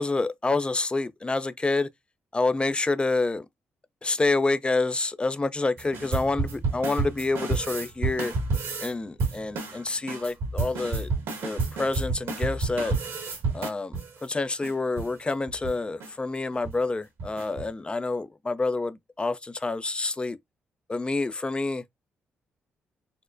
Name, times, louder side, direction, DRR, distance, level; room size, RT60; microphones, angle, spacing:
voice 1, 0.0-1.9 2.3-3.5 4.0-8.3 8.8-11.1 11.4-12.9 13.5-20.4 20.9-21.8, left 3 dB, 25° left, 0.4 m, -28 dB
sound 1, 5.8-8.9 9.2-14.2 14.6-14.7 15.0-15.1 15.5-15.7 16.0-16.1 16.5-16.7 17.2-17.7, right 3 dB, 75° right, 1.6 m, -30 dB
4.2 x 2.1 x 2.5 m
supercardioid pair, 60°, 4 cm